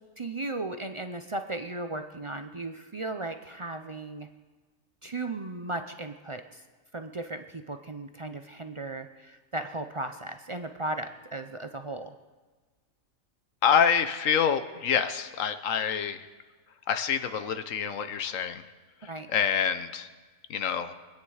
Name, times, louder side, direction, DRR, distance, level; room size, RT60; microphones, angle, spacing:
voice 1, 0.2-4.3 5.0-6.6 6.9-12.1 19.0-19.3, right 2 dB, 45° right, 7 dB, 0.4 m, -36 dB
voice 2, 13.6-16.2 16.9-18.6 19.3-20.1 20.5-20.9, left 7 dB, 75° left, 11 dB, 1.2 m, -26 dB
24.0 x 9.6 x 4.9 m, 1.3 s
omnidirectional pair, 1.4 m